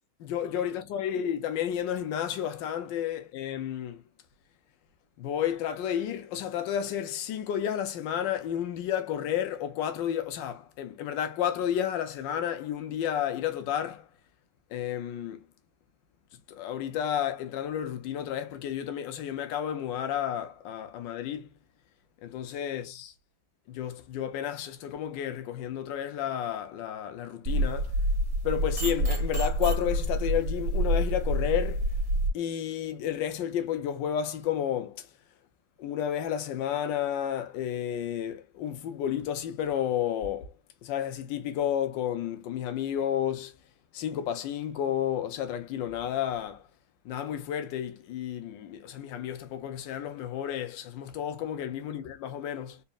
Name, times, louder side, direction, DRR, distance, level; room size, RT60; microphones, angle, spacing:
voice 1, 0.2-4.0 5.2-14.1 14.7-15.4 16.5-21.5 22.2-23.1 23.7-27.9 28.4-31.9 32.3-35.1 35.8-40.5 40.8-43.5 43.9-46.6 47.0-52.8, left 10 dB, 70° left, 1.4 m, -31 dB
sound 1, 27.5-32.3, right 1 dB, 35° right, 1.6 m, -27 dB
4.1 x 3.2 x 2.3 m
omnidirectional pair, 2.1 m